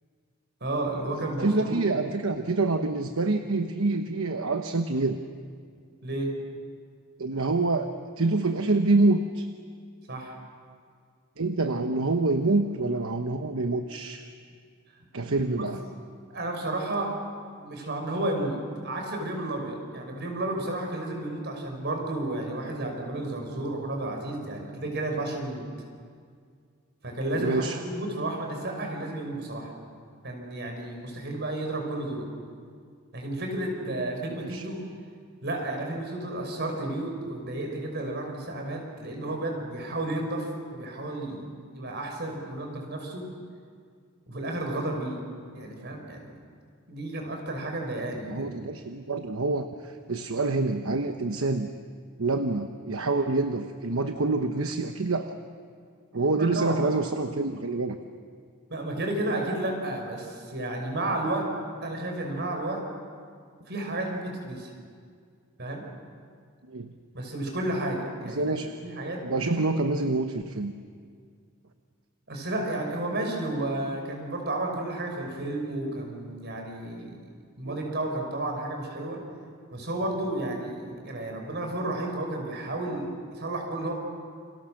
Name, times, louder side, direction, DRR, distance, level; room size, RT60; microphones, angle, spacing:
voice 1, 0.6-1.9 6.0-6.3 10.1-10.3 15.6-15.7 16.3-17.1 17.6-18.6 18.8-25.6 27.0-29.7 30.2-32.3 33.1-34.8 35.4-43.3 44.3-45.2 45.5-46.4 46.9-48.5 56.4-56.8 58.7-61.5 61.8-62.8 63.7-64.7 65.6-65.8 67.1-68.5 68.8-69.4 72.3-77.2 77.6-79.2 79.7-83.9, right 1 dB, 50° right, 2 dB, 5.6 m, -32 dB
voice 2, 1.4-5.2 7.2-9.5 11.4-14.2 15.1-15.8 27.4-27.8 34.4-34.6 48.3-51.7 52.2-55.3 56.1-58.0 66.7-66.9 68.2-68.7 69.2-70.7 77.6-77.8, right 3 dB, 70° right, 6 dB, 1.1 m, -26 dB
29.0 x 26.5 x 6.5 m, 2.1 s
head